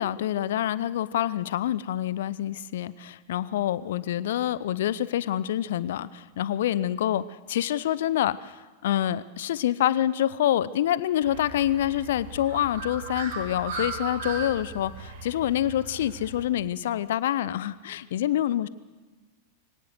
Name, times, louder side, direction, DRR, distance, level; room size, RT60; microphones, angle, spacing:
voice 1, 0.0-18.7, left 12 dB, 55° left, 18 dB, 0.6 m, -27 dB
Bird, 11.2-16.4, right 3 dB, 55° right, 5.4 m, -37 dB
23.5 x 18.0 x 6.6 m, 1.3 s
figure-of-eight pair, 90°, 0 cm